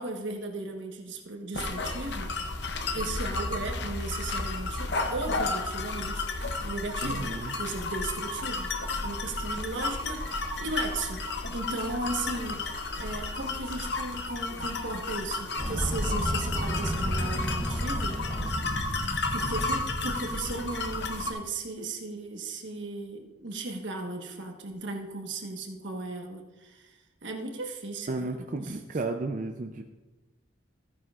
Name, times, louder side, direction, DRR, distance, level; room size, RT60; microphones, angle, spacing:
voice 1, 0.0-2.3 2.9-6.3 6.6-7.3 7.6-8.7 9.0-12.6 13.0-18.2 19.3-27.0 27.2-28.8, right 2 dB, 75° right, 3 dB, 1.3 m, -36 dB
sound 1, 1.5-21.3, left 3 dB, 65° left, 0.7 m, -33 dB
voice 2, 7.0-7.5 28.1-29.8, right 3 dB, 40° right, 4 dB, 0.5 m, -33 dB
sound 2, 15.6-21.4, equal, 5° left, 2.9 m, -33 dB
14.0 x 9.1 x 2.4 m, 1.1 s
head